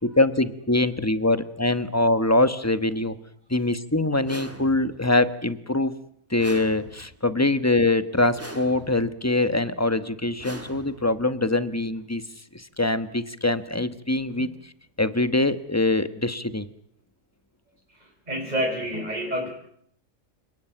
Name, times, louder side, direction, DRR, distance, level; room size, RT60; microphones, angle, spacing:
voice 1, 0.0-3.2 3.5-6.0 6.3-12.2 12.5-14.5 15.0-16.7, left 2 dB, 10° left, 12 dB, 1.2 m, -23 dB
sound 1, 4.2-5.1 6.4-7.3 8.3-9.2 10.4-11.3, right 1 dB, 10° right, 2.3 m, -41 dB
voice 2, 18.0-19.5, equal, 30° right, -1 dB, 4.6 m, -29 dB
29.0 x 19.0 x 9.0 m, 0.69 s
omnidirectional pair, 1.5 m